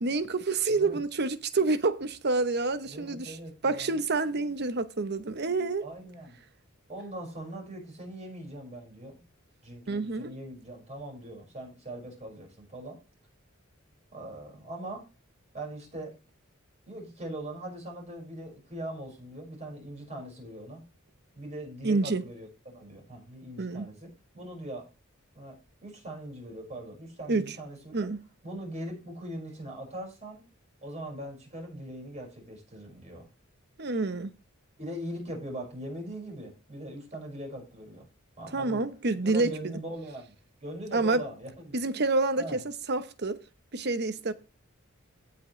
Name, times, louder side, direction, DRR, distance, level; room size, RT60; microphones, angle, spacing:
voice 1, 0.0-3.3 3.6-5.8 9.9-10.3 21.8-22.2 23.6-23.9 27.3-27.4 27.9-28.2 33.8-34.3 38.5-39.8 40.9-41.2 41.7-43.4 43.7-44.3, right 3 dB, 50° right, 0.9 m, -28 dB
voice 2, 2.8-4.0 5.8-6.4 6.9-9.2 9.6-13.0 14.1-15.0 15.5-16.1 16.9-20.8 21.3-24.1 24.3-24.9 25.4-28.1 28.4-30.4 30.8-33.3 34.8-38.1 38.4-38.8 39.2-40.3 40.6-41.8 42.4-42.6, right 1 dB, 35° right, 5.3 m, -41 dB
17.0 x 5.8 x 3.2 m
head